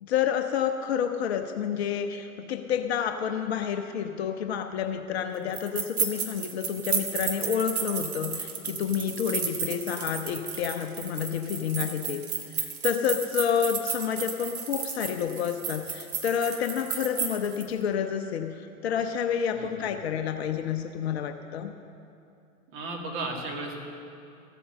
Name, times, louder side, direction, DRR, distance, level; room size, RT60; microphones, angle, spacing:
voice 1, 0.0-12.2 12.5-21.7, left 8 dB, 45° left, 7 dB, 0.8 m, -29 dB
sound 1, 5.5-17.7, right 6 dB, 70° right, 1.6 m, -33 dB
voice 2, 19.5-19.9 22.7-23.8, right 2 dB, 30° right, 0 dB, 2.3 m, -34 dB
14.5 x 8.5 x 6.6 m, 2.6 s
figure-of-eight pair, 105°, 44 cm